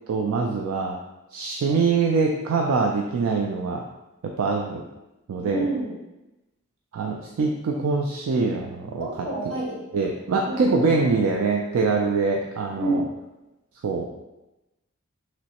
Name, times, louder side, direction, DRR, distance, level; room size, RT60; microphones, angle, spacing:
voice 1, 0.1-1.0 1.3-3.8 4.2-4.8 5.3-5.7 6.9-9.1 9.9-13.0 13.8-14.1, right 4 dB, 85° right, 0 dB, 0.3 m, -24 dB
voice 2, 5.5-6.0 9.0-9.8 10.4-10.8 12.8-13.1, right 2 dB, 65° right, -5 dB, 1.1 m, -28 dB
3.1 x 3.0 x 2.9 m, 0.98 s
head